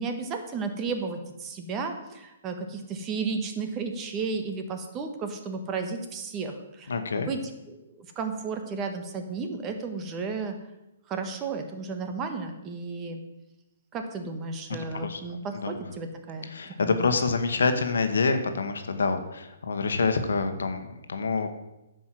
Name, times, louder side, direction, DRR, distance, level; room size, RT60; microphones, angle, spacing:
voice 1, 0.0-7.4 7.7-10.6 11.1-13.2 13.9-17.0, right 4 dB, 25° right, 6 dB, 1.4 m, -33 dB
voice 2, 6.9-7.3 15.0-15.2 15.6-15.7 16.5-21.5, left 4 dB, 75° left, 8 dB, 1.3 m, -26 dB
9.9 x 5.4 x 7.6 m, 0.96 s
hypercardioid pair, 135°, 0 cm